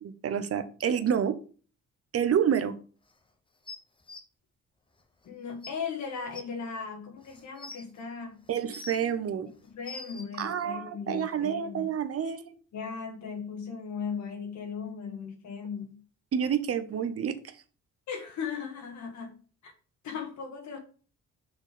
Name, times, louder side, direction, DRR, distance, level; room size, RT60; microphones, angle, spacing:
voice 1, 0.0-1.4 2.1-2.8 8.5-9.5 10.4-12.5 16.3-17.4, right 8 dB, 50° right, 11 dB, 0.9 m, -28 dB
sound 1, 3.7-4.2 5.2-5.3 5.6-5.7 6.3-6.4 7.2-7.8 8.5-9.1 9.6-10.3 11.3-11.4, left 3 dB, 15° left, 1.0 m, -43 dB
voice 2, 5.2-8.4 9.6-11.9 12.7-16.0 18.1-19.4 19.6-19.7 20.0-20.8, left 6 dB, 70° left, 3 dB, 1.7 m, -37 dB
6.2 x 4.1 x 4.9 m, 0.39 s
cardioid pair, 90°, 30 cm